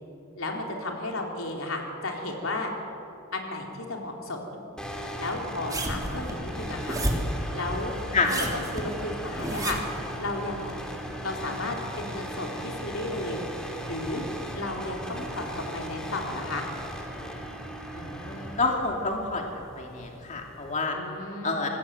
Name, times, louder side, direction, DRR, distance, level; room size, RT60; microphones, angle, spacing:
voice 1, 0.4-2.7 3.3-4.6 5.2-7.0 7.5-7.9 8.3-9.8 10.2-10.9 11.2-13.4 13.9-14.2 14.5-16.7 20.9-21.7, left 2 dB, 85° left, 1 dB, 3.9 m, -33 dB
sound 1, 4.8-20.7, equal, 5° left, 2.9 m, -38 dB
sound 2, 5.7-7.4 8.1-10.0 10.7-10.8, right 1 dB, 20° right, 3.1 m, -31 dB
voice 2, 17.9-19.5 19.8-21.0 21.4-21.7, left 3 dB, 35° left, 1 dB, 2.7 m, -28 dB
26.5 x 19.0 x 8.4 m, 3.0 s
head